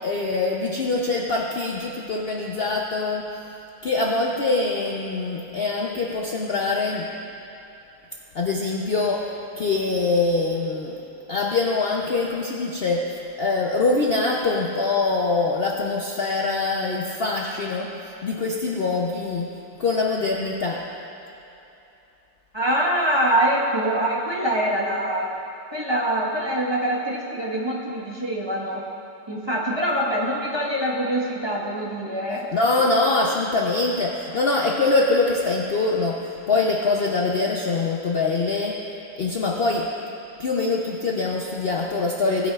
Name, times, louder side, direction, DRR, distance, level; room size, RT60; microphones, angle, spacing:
voice 1, 0.0-3.3 3.8-7.1 8.3-11.0 11.3-20.9 32.5-38.8 39.1-39.9 40.4-42.5, left 3 dB, 75° left, -1 dB, 0.5 m, -24 dB
voice 2, 22.5-25.3 25.7-28.8 29.3-32.5, right 1 dB, 20° right, -5 dB, 1.0 m, -24 dB
18.0 x 9.0 x 2.4 m, 2.8 s
omnidirectional pair, 1.9 m